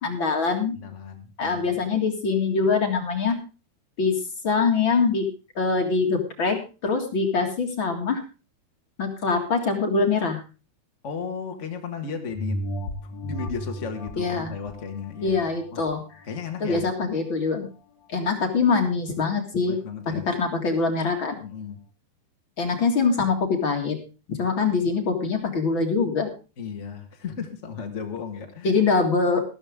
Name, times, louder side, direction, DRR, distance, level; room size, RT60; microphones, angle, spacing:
voice 1, 0.0-0.8 1.4-3.4 4.0-4.2 4.4-5.2 5.6-6.6 6.8-8.2 9.0-10.4 14.2-14.5 15.2-16.0 16.6-17.7 18.1-19.8 20.3-21.3 22.6-24.0 24.3-26.3 28.6-29.4, left 4 dB, 40° left, 4 dB, 2.2 m, -23 dB
voice 2, 0.8-1.8 11.0-12.6 13.0-15.8 16.2-16.9 19.6-20.3 21.4-21.8 26.6-29.0, left 5 dB, 75° left, 4 dB, 0.6 m, -35 dB
sound 1, 12.3-17.3 17.8-17.9, left 1 dB, 55° left, 3.1 m, -35 dB
14.0 x 12.5 x 3.6 m, 0.33 s
omnidirectional pair, 4.4 m